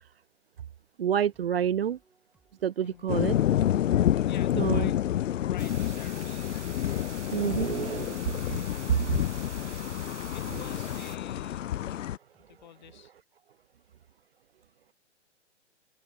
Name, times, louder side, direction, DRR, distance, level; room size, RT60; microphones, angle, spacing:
voice 1, 1.0-2.0 2.6-3.4 4.6-4.9 7.3-8.2, right 9 dB, 55° right, 0.5 m, -28 dB
sound 1, 1.3-12.7, right 3 dB, 5° right, 5.3 m, -68 dB
sound 2, 3.1-12.2, left 11 dB, 90° left, 0.5 m, -28 dB
voice 2, 4.2-5.0 5.3-6.7 10.3-11.6 12.5-13.1, left 10 dB, 40° left, 3.3 m, -48 dB
sound 3, 5.6-11.2, right 7 dB, 70° right, 2.1 m, -47 dB
open air
hypercardioid pair, 175°, 36 cm